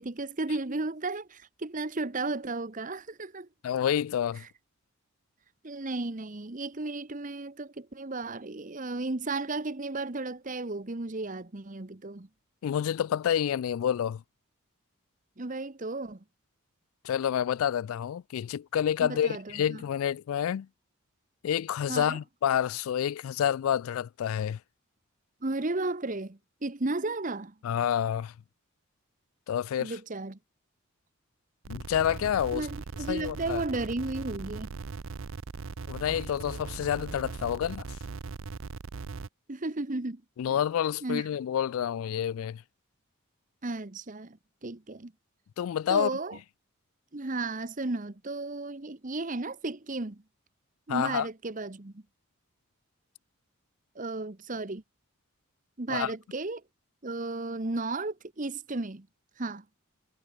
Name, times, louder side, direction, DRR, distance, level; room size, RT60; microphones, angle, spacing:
voice 1, 0.0-3.5 4.4-4.5 5.6-12.3 15.4-16.2 19.0-19.8 21.9-22.2 25.4-27.5 29.8-30.4 32.5-34.7 39.5-40.2 40.5-40.6 41.0-41.3 43.6-45.1 45.9-46.4 47.1-50.2 50.9-52.0 53.9-54.8 55.8-56.6 57.0-59.1 59.4-59.6, right 2 dB, 35° right, 1.1 m, -34 dB
voice 2, 3.6-4.4 12.6-14.2 17.0-20.7 21.4-24.6 27.6-28.3 29.5-30.0 31.7-32.7 33.1-33.6 35.9-37.8 40.4-42.6 45.6-46.1 50.9-51.3 55.9-56.1, left 9 dB, 75° left, 0.3 m, -28 dB
sound 1, 31.6-39.3, right 4 dB, 65° right, 0.6 m, -39 dB
head